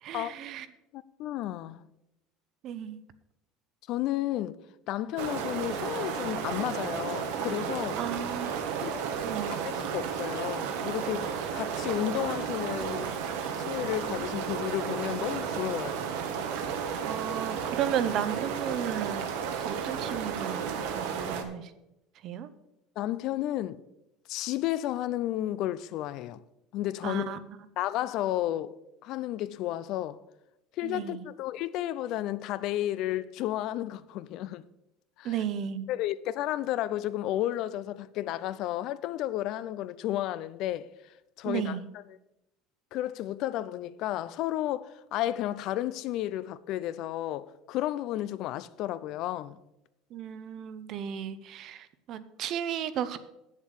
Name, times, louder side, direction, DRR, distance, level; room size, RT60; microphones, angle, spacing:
voice 1, 0.0-0.7 2.6-3.0 8.0-8.7 9.2-9.5 17.0-19.2 19.6-21.7 22.2-22.5 27.0-27.4 30.8-31.2 35.2-35.9 41.4-41.8 50.1-53.2, right 9 dB, 50° right, 0.8 m, -34 dB
voice 2, 0.9-1.9 3.9-4.6 4.9-8.0 8.8-9.1 9.5-13.2 13.6-16.0 23.0-23.8 24.3-26.4 26.7-27.4 27.8-30.2 30.8-34.6 35.2-35.4 35.9-40.9 41.4-42.0 42.9-49.6, left 13 dB, 55° left, 0.5 m, -32 dB
sound 1, 5.2-21.4, right 7 dB, 80° right, 1.3 m, -33 dB
8.3 x 7.4 x 6.5 m
cardioid pair, 135°, 0 cm